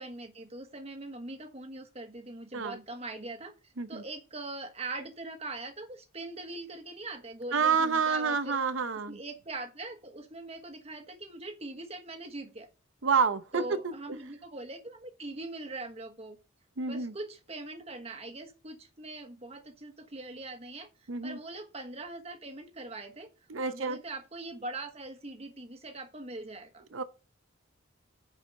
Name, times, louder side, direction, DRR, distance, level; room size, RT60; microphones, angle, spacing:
voice 1, 0.0-8.6 9.1-12.7 13.5-16.4 16.8-23.3 23.6-26.8, right 2 dB, 30° right, 1.3 m, -42 dB
voice 2, 7.5-9.2 13.0-13.9 16.8-17.1 21.1-21.4 23.5-24.0 26.9-27.0, right 5 dB, 85° right, 0.8 m, -28 dB
9.5 x 4.9 x 5.4 m
head